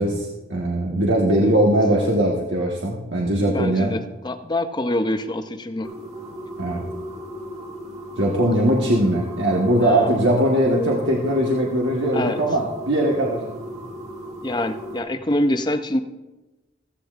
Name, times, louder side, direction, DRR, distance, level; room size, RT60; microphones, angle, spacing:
voice 1, 0.0-3.9 6.6-6.8 8.2-13.4, right 1 dB, 80° right, -2 dB, 1.3 m, -20 dB
voice 2, 3.4-5.9 9.8-10.2 12.1-12.4 14.4-16.0, left 1 dB, 25° left, 9 dB, 0.6 m, -25 dB
sound 1, 5.8-15.0, equal, 40° right, 2.6 m, -36 dB
16.0 x 14.5 x 2.5 m, 1.1 s
head